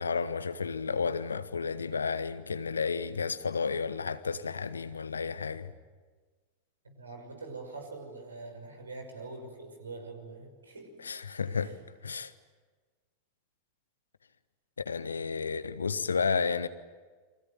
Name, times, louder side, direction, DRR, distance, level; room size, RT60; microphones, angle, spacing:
voice 1, 0.0-5.7 11.0-11.8 12.0-12.3 14.8-16.7, left 5 dB, 75° left, 1.1 m, -32 dB
voice 2, 6.8-11.1 11.5-11.7, right 3 dB, 75° right, 5.9 m, -44 dB
30.0 x 24.5 x 7.7 m
figure-of-eight pair, 90°, 0 cm